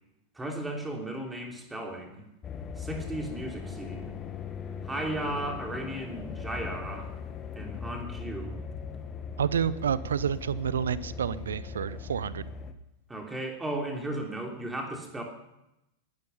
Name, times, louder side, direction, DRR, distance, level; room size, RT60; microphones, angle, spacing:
voice 1, 0.3-2.3 2.8-4.2 4.8-7.1 7.5-8.6 13.1-15.2, right 1 dB, 10° right, 2 dB, 3.3 m, -35 dB
sound 1, 2.4-12.7, left 6 dB, 25° left, 1.4 m, -39 dB
voice 2, 9.4-12.5, right 8 dB, 65° right, 19 dB, 0.7 m, -29 dB
20.0 x 12.0 x 5.6 m, 0.88 s
figure-of-eight pair, 90°, 0 cm